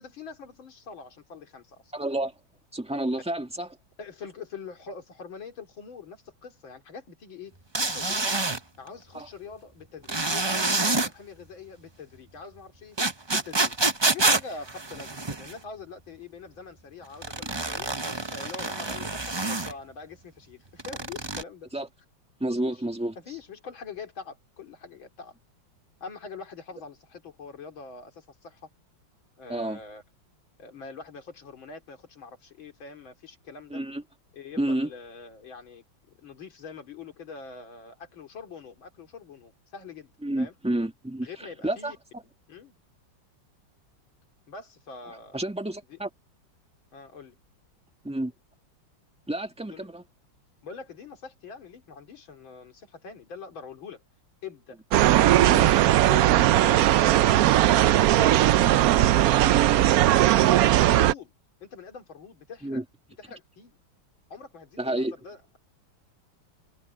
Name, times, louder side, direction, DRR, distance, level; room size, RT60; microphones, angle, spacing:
voice 1, 0.0-1.9 4.0-8.4 8.8-13.0 13.3-13.8 14.1-17.9 18.3-21.7 22.6-22.7 23.2-25.3 26.0-28.7 29.4-30.0 30.6-33.8 34.3-35.9 36.2-40.1 40.4-40.5 41.2-42.0 42.5-42.8 44.5-45.4 45.9-46.0 46.9-47.4 49.7-49.9 50.6-54.0 54.4-54.8 55.1-55.6 56.1-57.4 57.6-60.3 60.6-61.3 61.6-62.8 63.2-63.8 64.3-65.6, left 5 dB, 85° left, 3.6 m, -44 dB
voice 2, 1.9-2.4 2.7-3.7 9.1-9.3 21.7-21.9 22.4-23.1 29.5-29.8 33.7-34.0 34.6-34.9 40.2-42.2 45.1-46.1 48.0-48.3 49.3-50.0 55.4-55.7 62.6-62.8 64.8-65.2, right 1 dB, 5° right, 2.0 m, -30 dB
sound 1, 7.7-8.6 10.1-11.1 13.0-15.6 17.2-19.7 20.8-21.4, right 2 dB, 20° right, 0.7 m, -27 dB
sound 2, 54.9-61.1, right 13 dB, 80° right, 0.8 m, -19 dB
omnidirectional pair, 2.1 m